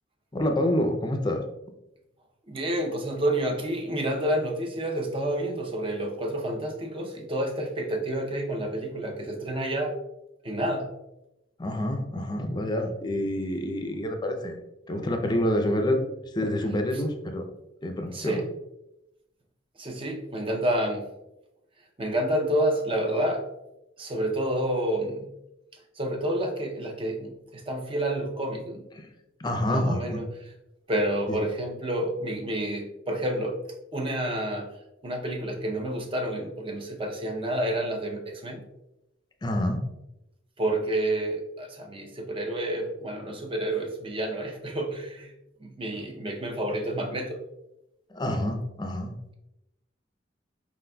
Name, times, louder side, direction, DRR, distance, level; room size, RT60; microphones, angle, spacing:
voice 1, 0.3-1.4 11.6-14.6 14.9-17.5 17.8-18.4 29.0-29.1 29.4-30.2 31.3-31.4 39.4-39.8 48.1-49.1, left 1 dB, 25° left, 5 dB, 0.5 m, -27 dB
voice 2, 2.5-10.0 10.4-10.9 18.1-18.4 19.8-21.1 22.0-23.5 24.0-25.3 26.0-28.8 29.7-30.3 30.9-33.6 33.9-34.7 35.0-38.6 40.6-45.3 45.6-47.4, right 1 dB, 30° right, 2 dB, 0.6 m, -29 dB
4.8 x 3.9 x 2.2 m, 0.91 s
head